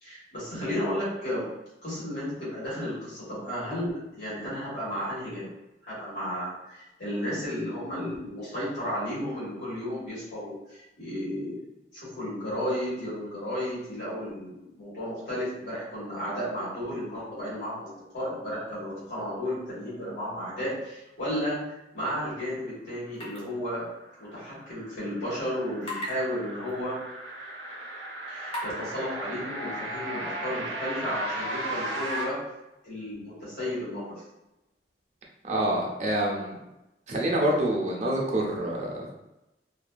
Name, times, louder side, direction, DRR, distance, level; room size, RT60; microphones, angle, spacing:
voice 1, 0.0-1.4 1.8-5.5 5.8-11.5 11.9-21.6 21.9-23.8 24.2-26.9 28.3-32.4 32.8-34.0, equal, 75° left, -9 dB, 1.3 m, -33 dB
sound 1, 23.2-23.4 23.7-23.8 25.8-26.1 26.7-26.8 27.5-27.6 28.5-28.7, left 1 dB, 35° left, 0.8 m, -35 dB
sound 2, 23.9-32.2, right 1 dB, 90° right, 0.6 m, -36 dB
voice 2, 35.4-36.6 37.1-39.1, right 1 dB, 40° right, -2 dB, 0.5 m, -27 dB
2.5 x 2.2 x 2.2 m, 0.95 s
head